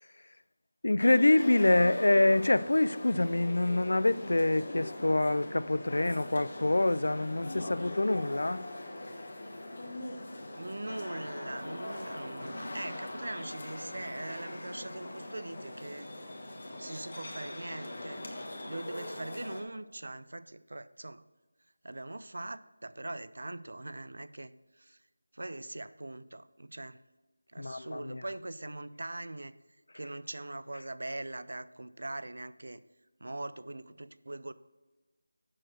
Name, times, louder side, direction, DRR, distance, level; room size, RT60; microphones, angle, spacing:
voice 1, 0.8-8.6 27.6-28.2, left 2 dB, 75° left, 0.4 m, -26 dB
sound 1, 1.0-19.6, left 1 dB, 45° left, 1.4 m, -41 dB
voice 2, 10.6-16.1 16.7-18.2 18.6-21.2 21.8-25.0 25.3-27.0 27.5-29.5 29.9-32.8 33.2-34.5, right 2 dB, 70° right, 0.5 m, -41 dB
7.6 x 6.3 x 6.2 m
figure-of-eight pair, 175°, 0 cm